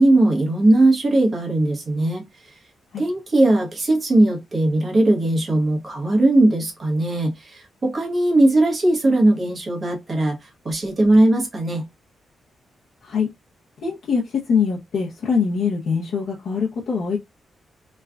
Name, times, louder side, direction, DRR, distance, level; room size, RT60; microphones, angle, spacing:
voice 1, 0.0-2.2 3.0-11.8, right 1 dB, 35° right, 1.1 m, -19 dB
voice 2, 13.8-17.2, left 6 dB, 70° left, 0.7 m, -23 dB
3.1 x 2.3 x 2.3 m
cardioid pair, 115°, 0 cm